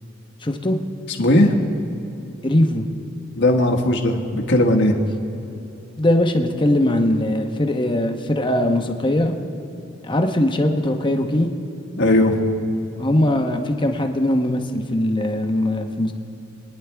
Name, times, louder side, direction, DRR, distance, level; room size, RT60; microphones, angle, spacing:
voice 1, 0.4-0.8 2.4-2.9 6.0-9.3 10.1-11.5 13.0-16.1, left 1 dB, 25° left, 4 dB, 1.0 m, -20 dB
voice 2, 1.2-1.5 3.4-5.0 12.0-12.3, left 1 dB, 60° left, 2 dB, 1.5 m, -17 dB
27.0 x 10.5 x 3.5 m, 2.9 s
head